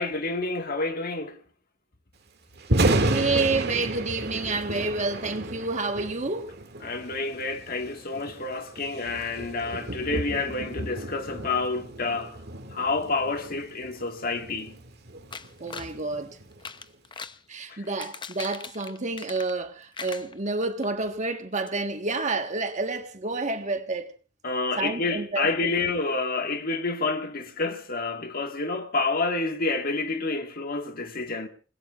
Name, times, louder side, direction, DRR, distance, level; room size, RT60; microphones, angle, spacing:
voice 1, 0.0-1.4 6.8-12.4 12.7-14.8 17.7-17.9 24.4-31.5, left 3 dB, 50° left, 1.8 m, -29 dB
Thunder, 2.6-16.7, right 2 dB, 55° right, 2.2 m, -32 dB
voice 2, 3.1-6.5 15.6-16.4 17.5-24.1 24.8-25.5, right 3 dB, 40° right, 1.5 m, -29 dB
sound 1, 15.3-15.9 16.5-17.4 17.8-19.7 19.9-20.9 21.2-21.3 21.7-21.8, left 5 dB, 25° left, 0.8 m, -40 dB
28.0 x 20.5 x 2.5 m
head